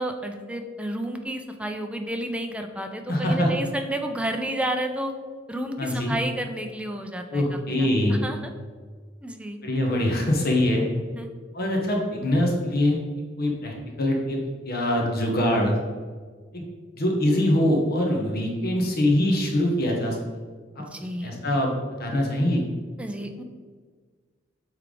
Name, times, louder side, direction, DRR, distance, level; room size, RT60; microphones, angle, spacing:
voice 1, 0.0-5.1 5.5-8.4 9.2-9.6 11.2-11.3 20.9-21.3 23.0-23.4, right 1 dB, 5° right, 5 dB, 0.5 m, -31 dB
voice 2, 3.1-3.5 5.8-6.2 7.3-8.2 9.6-10.9 11.5-13.0 13.4-15.8 16.5-16.6 16.9-20.2 20.8-20.9 21.2-21.7 22.0-22.6, left 1 dB, 55° left, 0 dB, 1.0 m, -23 dB
8.2 x 3.4 x 3.8 m, 1.5 s
head